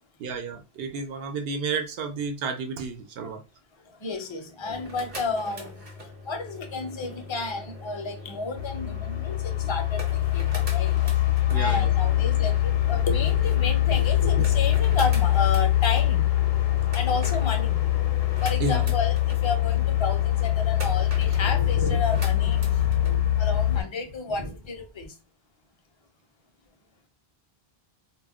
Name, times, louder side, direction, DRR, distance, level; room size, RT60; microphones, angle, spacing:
voice 1, 0.2-3.4 11.5-11.9 18.6-18.8, right 4 dB, 75° right, 0.8 m, -31 dB
voice 2, 3.9-5.9 6.3-11.2 11.5-16.3 16.9-17.9 18.4-25.2, left 3 dB, 40° left, 0.5 m, -31 dB
sound 1, 4.6-23.2, left 2 dB, 40° right, 0.7 m, -41 dB
sound 2, 8.6-23.8, left 13 dB, 75° left, 0.8 m, -23 dB
2.2 x 2.0 x 3.5 m
omnidirectional pair, 1.0 m